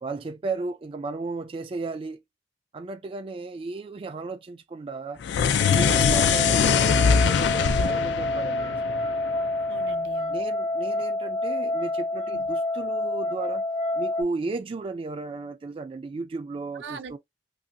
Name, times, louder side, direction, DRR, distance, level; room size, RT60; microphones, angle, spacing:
voice 1, 0.0-2.2 2.7-5.2 5.7-9.1 10.3-13.6 13.9-17.2, right 3 dB, 30° right, 0.3 m, -34 dB
sound 1, 5.2-9.6, left 6 dB, 75° left, 0.3 m, -22 dB
sound 2, 5.6-14.2, left 2 dB, 35° left, 0.7 m, -28 dB
voice 2, 9.7-10.4 12.3-12.5 16.8-17.2, right 4 dB, 80° right, 0.6 m, -41 dB
3.0 x 2.6 x 2.5 m
head